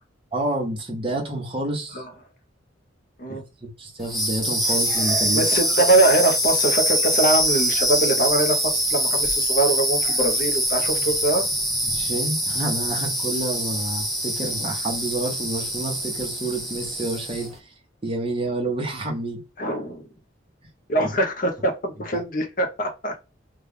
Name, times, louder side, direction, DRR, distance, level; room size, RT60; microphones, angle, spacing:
voice 1, 0.3-2.0 3.3-5.5 11.9-17.7 18.0-19.4 21.0-21.1 22.1-22.2, right 1 dB, 25° right, 1.0 m, -29 dB
sound 1, 4.0-17.5, equal, ahead, 0.7 m, -24 dB
voice 2, 5.3-11.4 19.6-20.0 20.9-23.2, right 1 dB, 45° left, 0.7 m, -22 dB
3.2 x 2.4 x 3.5 m
head